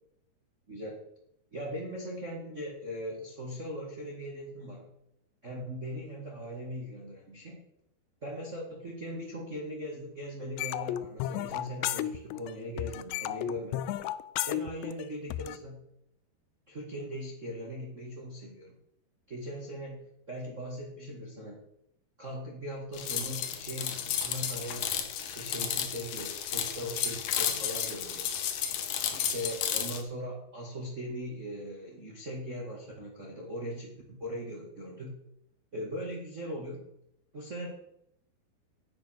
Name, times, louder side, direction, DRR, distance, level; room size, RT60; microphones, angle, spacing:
voice 1, 0.7-1.0 1.5-4.9 5.4-7.6 8.2-13.8 14.5-15.9 16.7-18.8 19.3-21.6 22.2-28.3 29.1-35.2 35.7-36.9 37.3-37.7, equal, 50° right, -1 dB, 0.8 m, -40 dB
sound 1, 10.6-12.5 12.8-15.6, left 13 dB, 90° left, 2.8 m, -33 dB
sound 2, 22.9-30.0, left 9 dB, 65° left, 2.3 m, -33 dB
9.6 x 9.5 x 6.3 m, 0.78 s
omnidirectional pair, 4.9 m